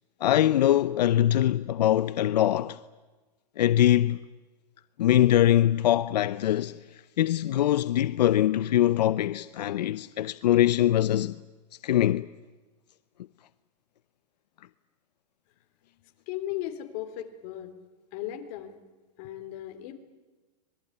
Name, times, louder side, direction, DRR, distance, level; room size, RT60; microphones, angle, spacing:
voice 1, 0.2-2.8 3.6-4.2 5.0-6.8 7.2-11.3 11.8-12.3, left 12 dB, 85° left, 0.8 m, -22 dB
voice 2, 16.3-17.7 18.1-18.7 19.2-19.9, left 12 dB, 40° left, 3.3 m, -36 dB
26.0 x 21.0 x 9.7 m
supercardioid pair, 160°, 21 cm